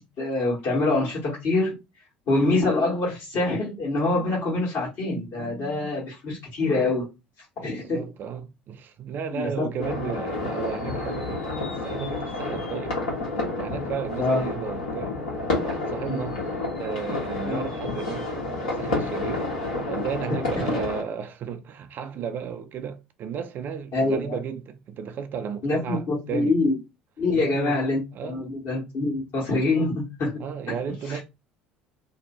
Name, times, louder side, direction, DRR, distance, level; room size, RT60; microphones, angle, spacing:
voice 1, 0.0-1.7 2.3-7.1 7.6-8.0 9.3-10.1 14.2-14.6 16.1-16.2 17.4-17.7 23.9-24.4 25.6-26.8 27.2-30.4 31.0-31.2, left 2 dB, 50° left, 1.4 m, -25 dB
voice 2, 7.6-13.0 13.6-15.2 15.6-16.4 16.8-19.5 19.9-26.5 27.3-27.8 28.1-28.4 30.4-31.2, right 7 dB, 45° right, 0.4 m, -34 dB
sound 1, 9.8-21.0, left 2 dB, 70° left, 1.3 m, -30 dB
2.7 x 2.1 x 3.0 m
figure-of-eight pair, 60°, 5 cm